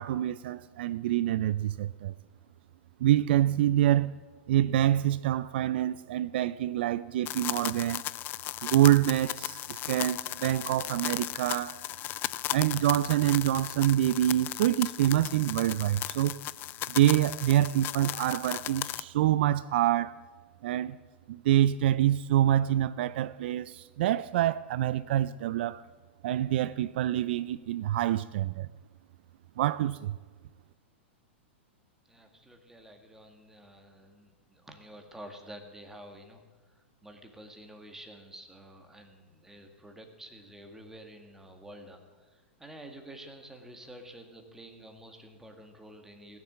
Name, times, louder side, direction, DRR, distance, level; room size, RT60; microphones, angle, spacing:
voice 1, 0.0-2.1 3.0-4.2 4.5-8.0 8.6-11.8 12.5-16.4 16.9-20.2 20.6-21.0 21.3-25.8 26.2-28.7 29.6-30.2, right 13 dB, 65° right, 0.3 m, -26 dB
sound 1, 7.3-19.0, left 15 dB, 35° left, 0.3 m, -36 dB
voice 2, 32.1-36.4 36.7-46.4, right 1 dB, 5° right, 1.8 m, -49 dB
16.0 x 7.2 x 7.4 m
hypercardioid pair, 115°, 6 cm